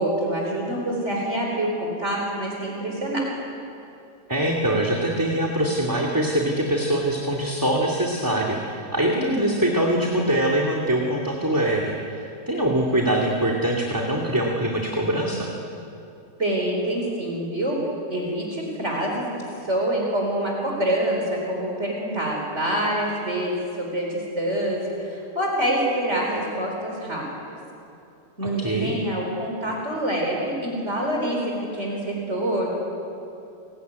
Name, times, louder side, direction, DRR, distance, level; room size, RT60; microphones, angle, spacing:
voice 1, 0.0-3.3 9.1-9.6 16.4-17.8 18.1-19.3 19.6-27.2 28.4-32.7, right 1 dB, 40° right, -1 dB, 4.4 m, -26 dB
voice 2, 4.3-15.5 28.6-29.0, right 1 dB, 10° right, -2 dB, 2.4 m, -23 dB
29.5 x 19.0 x 9.5 m, 2.7 s
omnidirectional pair, 1.8 m